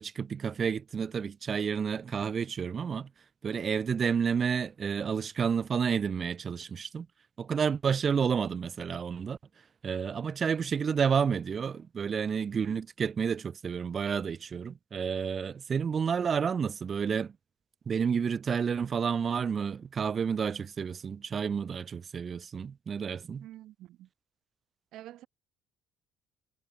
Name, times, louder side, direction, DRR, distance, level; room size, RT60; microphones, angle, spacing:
voice 1, 0.0-3.1 3.4-7.1 7.4-9.4 9.8-17.3 17.9-23.4, right 6 dB, 40° right, 1.3 m, -30 dB
voice 2, 23.4-24.1 24.9-25.3, right 14 dB, 65° right, 3.4 m, -47 dB
hypercardioid pair, 55°, 0 cm